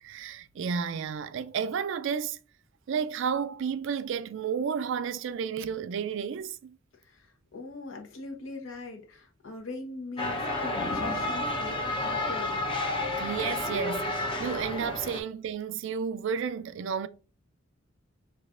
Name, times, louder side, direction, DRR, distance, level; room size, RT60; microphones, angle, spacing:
voice 1, 0.0-2.4 2.9-6.8 13.2-17.1, right 6 dB, 65° right, 0.3 m, -32 dB
voice 2, 7.0-12.6, left 3 dB, 70° left, 1.0 m, -41 dB
sound 1, 10.2-15.2, left 2 dB, 25° left, 0.7 m, -31 dB
5.9 x 2.4 x 2.4 m
head